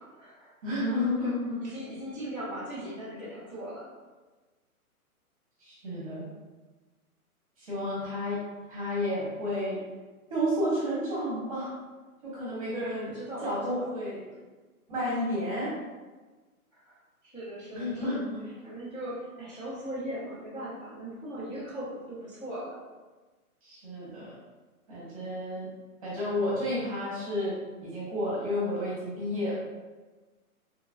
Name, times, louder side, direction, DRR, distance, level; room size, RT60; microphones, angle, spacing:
voice 1, 0.0-0.5 1.2-1.3 1.6-3.9 12.8-13.9 16.7-17.0 17.2-22.8, right 1 dB, 30° left, -11 dB, 0.4 m, -39 dB
voice 2, 0.6-1.6 5.6-6.3 7.6-8.4 8.7-9.8 10.3-11.7 12.2-13.1 13.4-14.2 14.9-15.7 17.7-18.5 23.6-24.4 24.9-25.7 26.0-27.5 27.8-29.5, left 1 dB, 25° right, -8 dB, 0.7 m, -31 dB
2.9 x 2.4 x 2.4 m, 1.3 s
hypercardioid pair, 170°, 44 cm